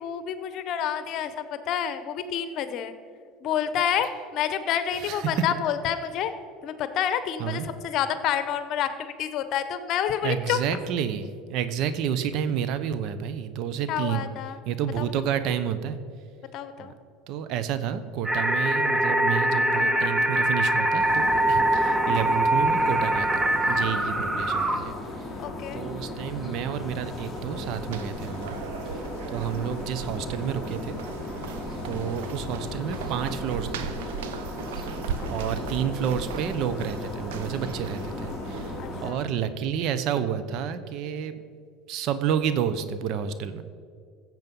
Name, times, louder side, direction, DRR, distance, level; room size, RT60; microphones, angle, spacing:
voice 1, 0.0-2.9 3.4-6.3 6.6-10.6 13.9-14.6 15.0-15.1 16.5-16.9 25.4-25.8 35.4-35.6 38.8-39.3, left 9 dB, 55° left, 11 dB, 1.0 m, -29 dB
voice 2, 10.2-14.3 14.7-16.0 16.8-16.9 17.3-24.9 25.7-28.6 29.3-31.0 31.8-33.9 35.3-38.7 39.0-41.4 41.9-43.6, right 8 dB, 60° right, 11 dB, 0.9 m, -30 dB
sound 1, 18.3-24.8, right 1 dB, 15° right, 1.2 m, -23 dB
sound 2, 21.0-39.1, left 2 dB, 10° left, 2.4 m, -36 dB
sound 3, 27.1-39.0, right 6 dB, 85° right, 0.7 m, -38 dB
15.0 x 7.6 x 5.5 m, 2.2 s
supercardioid pair, 100°, 0 cm